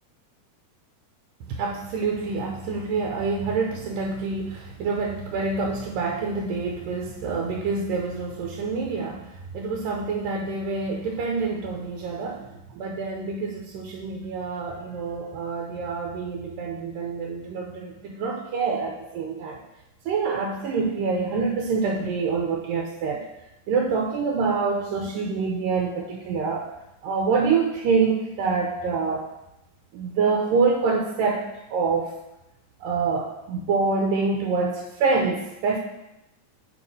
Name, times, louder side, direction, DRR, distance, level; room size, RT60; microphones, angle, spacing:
voice 1, 1.5-19.6 20.1-23.3 23.7-26.7 27.0-29.3 29.9-31.4 31.7-32.1 32.8-35.8, right 4 dB, 85° right, 0 dB, 2.4 m, -26 dB
6.3 x 4.9 x 5.4 m, 0.92 s
omnidirectional pair, 3.8 m